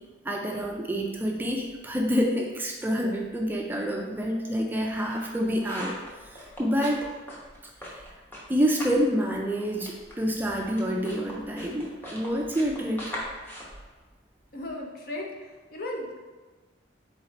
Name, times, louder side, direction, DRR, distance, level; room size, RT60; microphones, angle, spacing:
voice 1, 0.2-5.9 6.2-7.1 7.8-8.0 8.5-13.2, equal, 10° right, 0 dB, 0.3 m, -28 dB
sound 1, 4.9-9.1 9.3-14.7, equal, 10° left, 0.8 m, -42 dB
voice 2, 14.5-16.2, left 1 dB, 55° left, 0 dB, 0.7 m, -36 dB
3.9 x 3.0 x 4.1 m, 1.3 s
head